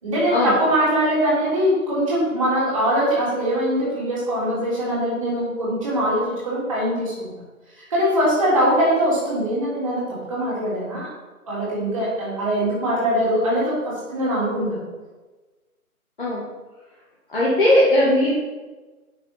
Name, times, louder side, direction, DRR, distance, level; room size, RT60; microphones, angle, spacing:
voice 1, 0.0-7.3 7.9-11.1 11.5-14.8, equal, 20° right, -8 dB, 3.5 m, -22 dB
voice 2, 17.3-18.3, left 1 dB, 35° left, -7 dB, 2.4 m, -18 dB
8.8 x 8.7 x 5.8 m, 1.2 s
hypercardioid pair, 175°, 44 cm